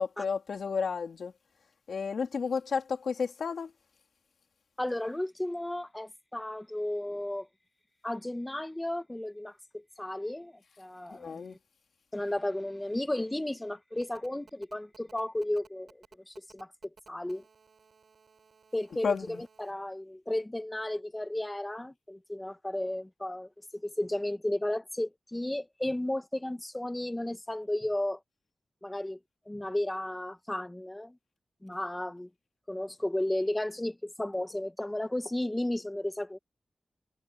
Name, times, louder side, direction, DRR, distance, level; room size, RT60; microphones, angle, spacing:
voice 1, 0.0-1.3 1.9-3.7 11.1-11.6 19.0-19.4, left 5 dB, 80° left, 2.7 m, -32 dB
voice 2, 4.8-7.5 8.0-11.6 12.1-16.7 17.1-17.4 18.7-28.2 28.8-29.2 29.5-31.2 31.6-32.3 32.7-36.4, left 1 dB, 10° left, 1.1 m, -34 dB
Telephone, 14.0-19.7, right 5 dB, 70° right, 6.4 m, -59 dB
wide cardioid pair, 115°, 0 cm